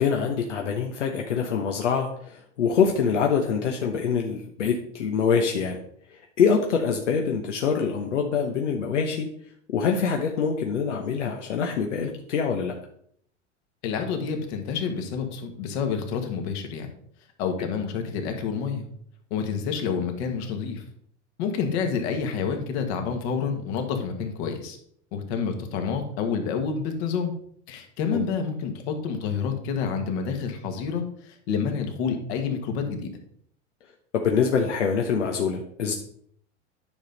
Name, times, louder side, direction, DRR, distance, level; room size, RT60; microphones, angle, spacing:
voice 1, 0.0-5.8 6.1-9.3 9.7-12.7 28.1-28.2 34.2-35.9, left 6 dB, 85° left, 2 dB, 1.0 m, -25 dB
voice 2, 13.8-16.9 17.4-18.9 19.3-20.8 21.4-24.8 25.1-27.3 27.7-33.1, left 6 dB, 60° left, 5 dB, 1.9 m, -28 dB
9.8 x 5.4 x 4.0 m, 0.65 s
hypercardioid pair, 105°, 35 cm